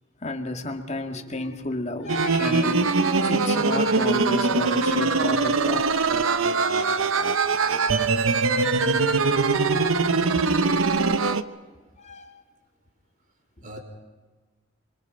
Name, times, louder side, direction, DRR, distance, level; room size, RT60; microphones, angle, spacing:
voice 1, 0.2-5.8 10.4-10.5 12.0-12.4 13.6-13.8, left 2 dB, 35° left, 2.0 m, -32 dB
sound 1, 2.1-11.4, right 4 dB, 85° right, 0.9 m, -22 dB
voice 2, 4.8-5.1 9.6-9.9 11.6-11.7 13.6-13.8, right 1 dB, 40° right, 3.7 m, -46 dB
26.0 x 25.0 x 5.4 m
head